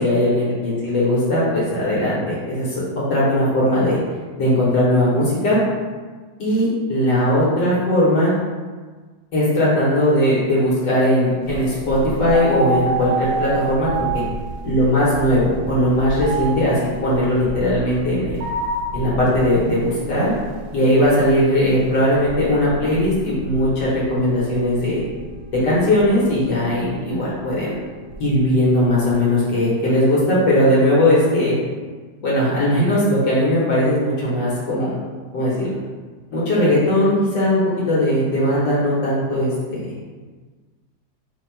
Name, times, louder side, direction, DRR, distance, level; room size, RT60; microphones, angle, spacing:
voice 1, 0.0-2.8 3.1-4.0 4.4-5.6 6.4-8.3 9.3-14.1 14.6-16.7 17.0-18.4 18.9-20.3 20.7-25.0 25.6-27.8 28.2-31.5 32.2-34.9 35.3-35.7 36.3-37.6 37.9-39.9, left 1 dB, 75° left, -7 dB, 1.7 m, -19 dB
sound 1, 11.4-29.1, right 3 dB, 65° right, 0.9 m, -30 dB
5.5 x 2.2 x 4.3 m, 1.4 s
omnidirectional pair, 2.0 m